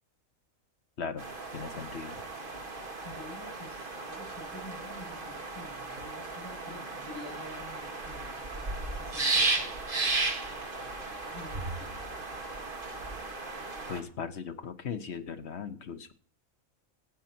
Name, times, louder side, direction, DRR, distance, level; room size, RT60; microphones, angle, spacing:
voice 1, 1.0-2.2 13.9-16.1, left 6 dB, 55° left, 9 dB, 1.2 m, -38 dB
sound 1, 1.2-14.0, right 3 dB, 40° right, 1.9 m, -35 dB
voice 2, 3.0-10.2 10.7-12.1, left 1 dB, 20° left, -3 dB, 7.2 m, -49 dB
14.5 x 8.9 x 4.4 m, 0.42 s
omnidirectional pair, 1.4 m